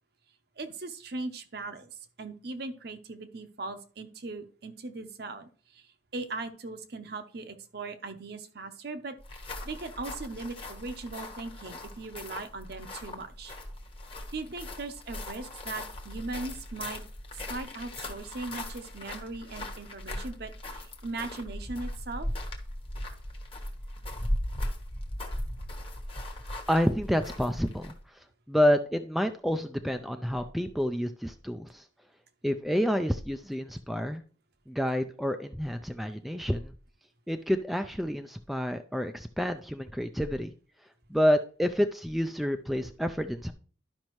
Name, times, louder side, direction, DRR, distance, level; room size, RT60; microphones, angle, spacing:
voice 1, 0.6-13.5 14.3-17.0 17.3-22.3, right 3 dB, 55° right, 9 dB, 0.8 m, -39 dB
sound 1, 9.2-28.1, left 1 dB, 30° left, 1.1 m, -38 dB
voice 2, 26.7-31.8 32.4-34.2 34.7-36.7 37.3-40.5 41.1-43.5, equal, ahead, 7 dB, 0.3 m, -29 dB
12.0 x 5.3 x 3.0 m, 0.41 s
head